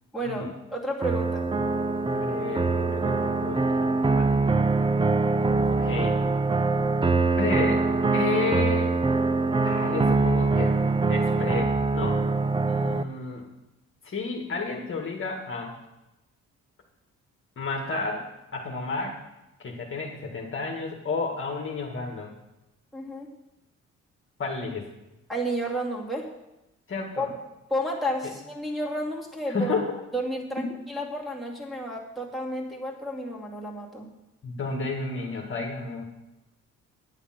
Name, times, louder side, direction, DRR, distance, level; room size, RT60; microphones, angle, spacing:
voice 1, 0.1-1.5 5.6-5.7 22.9-23.3 25.3-26.3 27.2-27.3 27.7-29.8 30.1-34.1, equal, ahead, -5 dB, 2.4 m, -31 dB
sound 1, 1.0-13.0, right 3 dB, 15° right, 0.5 m, -23 dB
voice 2, 2.0-4.9 5.7-6.2 7.3-7.8 8.1-8.9 9.6-10.8 11.1-12.2 12.7-13.5 14.0-15.8 17.6-19.2 19.6-22.3 24.4-24.9 26.9-27.3 29.5-29.9 30.6-30.7 34.4-36.0, left 4 dB, 40° left, 0 dB, 1.7 m, -32 dB
10.0 x 7.1 x 5.9 m, 0.96 s
cardioid pair, 90°, 30 cm